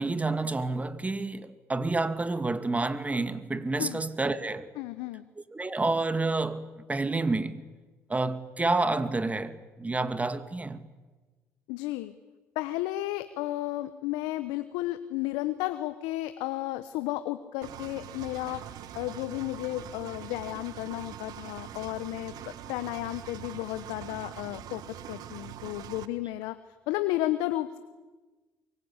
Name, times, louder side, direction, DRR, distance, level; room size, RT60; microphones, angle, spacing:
voice 1, 0.0-4.7 5.5-7.6 8.1-10.9, right 3 dB, 20° right, 2.3 m, -29 dB
voice 2, 4.8-5.2 11.7-12.1 12.5-18.6 18.9-26.6 26.9-27.8, left 16 dB, 80° left, 1.1 m, -33 dB
Engine, 17.6-26.1, right 11 dB, 70° right, 1.6 m, -43 dB
24.0 x 23.0 x 9.9 m
hypercardioid pair, 60°, 7 cm